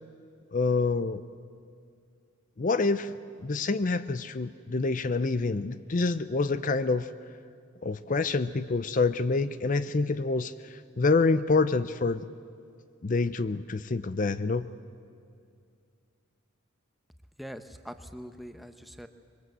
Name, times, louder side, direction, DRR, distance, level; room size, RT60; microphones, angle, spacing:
voice 1, 0.5-1.2 2.6-7.1 7.8-12.2 13.0-14.7, left 3 dB, 40° left, 14 dB, 0.5 m, -27 dB
voice 2, 17.4-19.1, equal, ahead, 8 dB, 0.9 m, -43 dB
24.0 x 22.5 x 8.1 m, 2.3 s
head